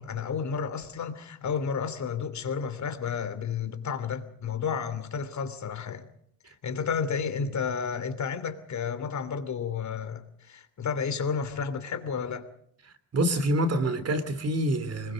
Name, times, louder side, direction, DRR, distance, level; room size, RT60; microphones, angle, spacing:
voice 1, 0.0-6.1 6.5-12.5, left 6 dB, 40° left, 3.0 m, -32 dB
voice 2, 13.1-15.1, right 1 dB, 35° right, 3.0 m, -26 dB
25.5 x 22.0 x 5.2 m
cardioid pair, 130°, 41 cm